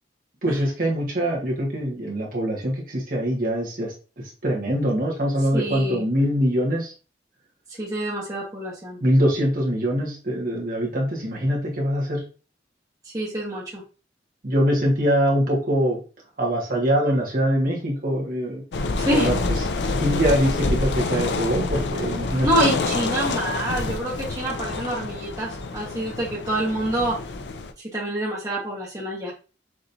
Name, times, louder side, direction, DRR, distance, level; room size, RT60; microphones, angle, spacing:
voice 1, 0.4-3.9 4.4-6.9 9.0-12.2 14.4-16.0 16.4-18.6 19.1-19.4 20.0-22.5, equal, 50° right, -2 dB, 1.6 m, -23 dB
voice 2, 5.5-6.0 7.7-9.0 13.0-13.8 19.0-19.3 22.4-27.2 27.8-29.3, right 1 dB, 20° right, -5 dB, 1.3 m, -26 dB
sound 1, 18.7-27.7, left 3 dB, 70° left, 0.6 m, -27 dB
6.2 x 3.1 x 2.7 m, 0.34 s
head